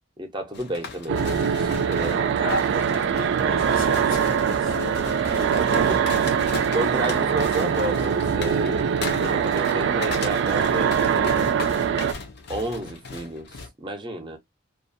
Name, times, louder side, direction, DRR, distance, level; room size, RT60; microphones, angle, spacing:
voice 1, 0.2-2.2 5.4-5.9 6.7-11.6 12.5-14.4, right 1 dB, 25° right, 0.6 m, -32 dB
sound 1, 0.5-13.7, left 4 dB, 55° left, 0.5 m, -37 dB
sound 2, 1.1-12.1, right 7 dB, 60° right, 0.3 m, -23 dB
voice 2, 2.1-5.0 5.7-6.0, left 2 dB, 80° left, 1.0 m, -34 dB
2.3 x 2.2 x 2.5 m
head